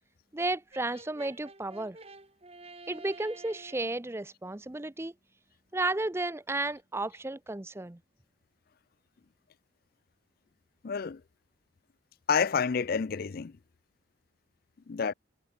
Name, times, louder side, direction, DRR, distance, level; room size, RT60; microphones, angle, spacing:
voice 1, 0.3-2.0 2.9-5.1 5.7-8.0, right 2 dB, 10° right, 0.5 m, -33 dB
Brass instrument, 0.7-4.0, right 3 dB, 30° right, 3.3 m, -50 dB
voice 2, 10.8-11.2 12.3-13.6 14.9-15.1, left 6 dB, 45° left, 0.4 m, -29 dB
head